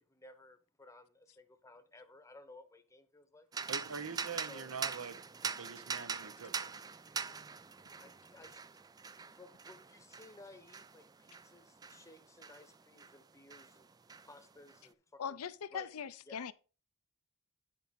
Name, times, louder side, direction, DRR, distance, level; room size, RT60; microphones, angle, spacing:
voice 1, 0.0-3.5 4.5-4.7 8.0-8.6 9.3-13.9 14.2-15.4 15.7-15.9 16.3-16.5, left 2 dB, 15° left, 0.9 m, -57 dB
sound 1, 3.5-13.2 13.5-14.8, right 5 dB, 15° right, 0.3 m, -43 dB
voice 2, 3.7-6.7, right 5 dB, 65° right, 0.7 m, -44 dB
voice 3, 15.2-16.5, left 7 dB, 75° left, 0.5 m, -41 dB
9.8 x 4.6 x 5.2 m
head